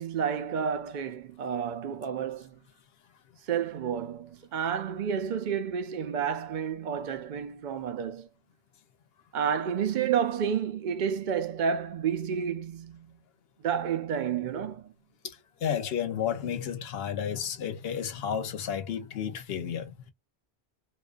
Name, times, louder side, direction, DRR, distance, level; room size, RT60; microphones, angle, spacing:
voice 1, 0.0-2.6 3.5-8.3 9.3-13.2 13.6-14.9, right 7 dB, 55° right, 0.6 m, -30 dB
voice 2, 15.6-20.0, left 8 dB, 70° left, 0.8 m, -32 dB
2.4 x 2.3 x 2.4 m
omnidirectional pair, 1.1 m